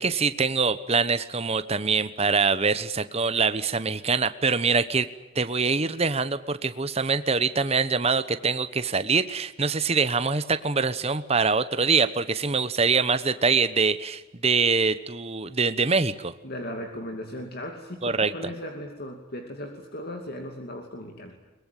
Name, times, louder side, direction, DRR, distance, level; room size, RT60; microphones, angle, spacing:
voice 1, 0.0-5.1 5.3-16.3 18.0-18.3, right 4 dB, 30° right, 12 dB, 1.0 m, -24 dB
voice 2, 16.4-21.3, left 1 dB, 50° left, 4 dB, 2.6 m, -37 dB
23.0 x 21.5 x 9.2 m, 1.1 s
head